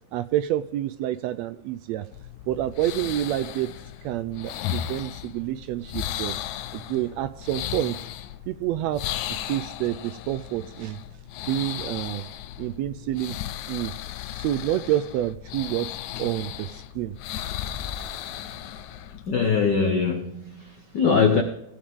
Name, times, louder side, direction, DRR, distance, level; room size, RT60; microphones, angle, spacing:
voice 1, 0.1-2.1 2.5-3.7 4.0-6.4 6.7-8.0 8.5-11.0 11.4-12.3 12.6-13.4 13.7-13.9 14.3-17.2, right 13 dB, 80° right, 11 dB, 1.6 m, -28 dB
sound 1, 2.1-19.7, left 12 dB, 90° left, 2.0 m, -36 dB
voice 2, 19.2-21.4, left 5 dB, 75° left, 5 dB, 1.0 m, -22 dB
18.0 x 8.8 x 3.6 m, 0.82 s
omnidirectional pair, 3.4 m